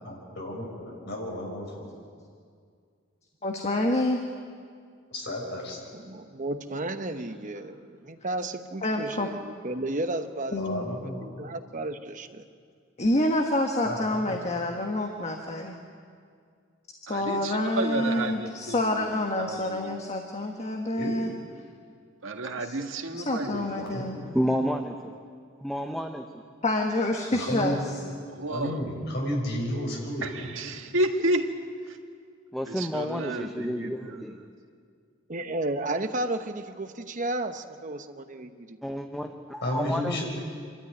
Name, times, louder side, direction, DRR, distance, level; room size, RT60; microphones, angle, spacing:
voice 1, 0.0-1.8 5.1-5.8 10.6-11.3 13.8-14.4 21.0-21.1 23.8-24.3 27.3-27.8 28.4-30.3 39.6-40.2, left 1 dB, 60° left, -1 dB, 5.9 m, -32 dB
voice 2, 3.4-4.2 8.8-9.3 10.5-10.9 13.0-15.7 17.1-21.3 23.3-24.2 26.6-27.8, left 1 dB, 35° left, 2 dB, 1.4 m, -27 dB
voice 3, 5.9-12.4 35.3-38.8, right 2 dB, 40° right, 8 dB, 1.1 m, -33 dB
voice 4, 17.1-20.1 22.2-24.0 28.3-28.8 30.2-31.6 31.8-32.0 32.7-34.5, right 1 dB, 85° right, 4 dB, 1.7 m, -32 dB
voice 5, 24.3-24.9 25.6-26.4 32.5-34.4 38.8-40.2, equal, ahead, 4 dB, 0.8 m, -30 dB
26.5 x 13.0 x 9.5 m, 2.2 s
head